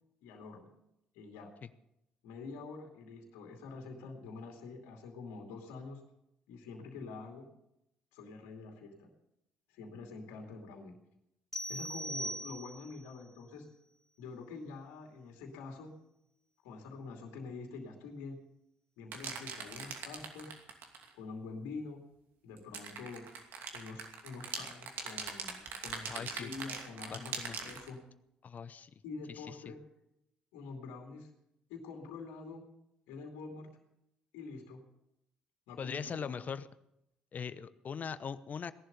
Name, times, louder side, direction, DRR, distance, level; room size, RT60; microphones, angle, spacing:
voice 1, 0.2-0.7 1.1-1.5 2.2-6.0 6.5-7.4 8.1-9.1 9.7-10.9 11.7-13.7 14.2-15.9 16.6-18.4 19.0-20.6 21.1-22.0 22.4-23.2 23.7-28.0 29.0-29.8 30.5-31.3 31.7-32.6 33.1-33.7 34.3-34.8 35.7-36.4, left 4 dB, 75° left, 3 dB, 2.5 m, -46 dB
sound 1, 11.5-13.1, right 1 dB, 10° left, 2.0 m, -40 dB
sound 2, 19.1-21.1 22.6-27.9, right 5 dB, 65° right, 2.6 m, -41 dB
voice 2, 26.1-26.5 27.1-27.6 28.4-28.9 29.3-29.7 35.8-36.7 37.3-38.7, left 6 dB, 45° left, 14 dB, 0.9 m, -41 dB
17.5 x 11.5 x 6.9 m, 0.82 s
hypercardioid pair, 50°, 4 cm